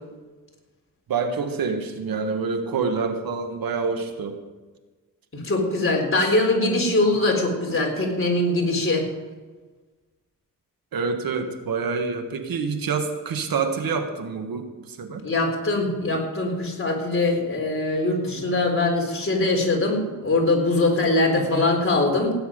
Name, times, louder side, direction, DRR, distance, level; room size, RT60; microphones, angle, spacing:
voice 1, 1.1-4.4 6.2-6.3 10.9-15.2 18.2-18.5 21.3-21.7, right 5 dB, 85° right, 6 dB, 1.6 m, -27 dB
voice 2, 5.3-9.1 15.2-22.3, left 2 dB, 40° left, 1 dB, 3.9 m, -22 dB
17.0 x 9.6 x 5.2 m, 1.3 s
cardioid pair, 85°, 34 cm